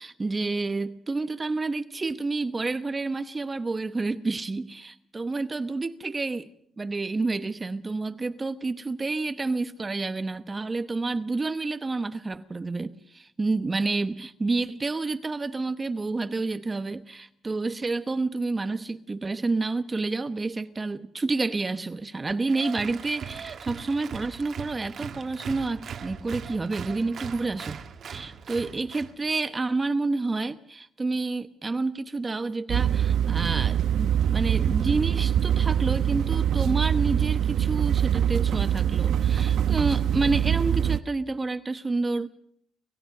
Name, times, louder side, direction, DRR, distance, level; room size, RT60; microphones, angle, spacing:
voice 1, 0.0-6.5 6.8-27.8 28.1-42.3, right 3 dB, 25° right, 0.9 m, -29 dB
Applause, 22.5-29.1, right 7 dB, 60° right, 1.9 m, -39 dB
sound 1, 32.7-41.0, right 9 dB, 75° right, 0.8 m, -24 dB
25.5 x 16.0 x 6.6 m
cardioid pair, 90°, 0 cm